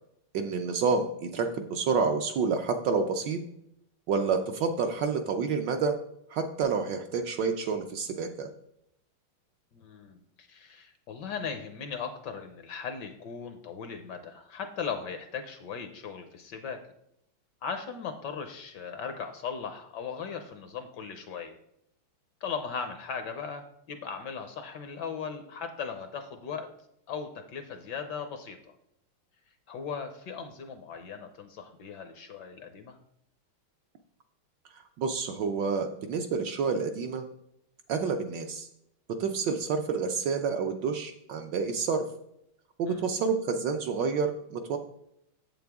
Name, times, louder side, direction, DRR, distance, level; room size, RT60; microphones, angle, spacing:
voice 1, 0.3-3.4 4.1-5.9 6.3-8.5 35.0-37.2 37.9-38.7 39.2-42.0 42.8-44.8, right 5 dB, 70° right, 5 dB, 1.1 m, -29 dB
voice 2, 9.7-16.8 17.6-21.5 22.4-26.7 27.1-28.6 29.7-33.0 42.9-43.1, left 6 dB, 65° left, 7 dB, 1.1 m, -38 dB
7.8 x 7.6 x 3.5 m, 0.77 s
omnidirectional pair, 2.4 m